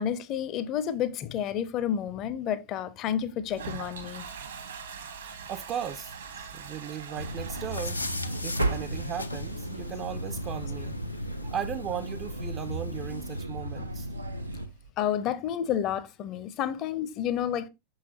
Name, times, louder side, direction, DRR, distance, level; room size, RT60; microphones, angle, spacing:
voice 1, 0.0-4.3 15.0-17.7, left 9 dB, 35° left, 0.6 m, -30 dB
Toilet flush, 3.4-14.9, right 6 dB, 70° right, 1.1 m, -45 dB
voice 2, 5.2-6.2 6.5-8.0 8.4-11.0 11.4-14.1 16.6-16.7, right 9 dB, 30° right, 0.4 m, -37 dB
sound 1, 7.1-14.7, right 1 dB, 85° right, 0.7 m, -34 dB
sound 2, 7.7-13.4, left 2 dB, 85° left, 0.4 m, -40 dB
6.0 x 5.6 x 2.9 m
figure-of-eight pair, 90°, 0 cm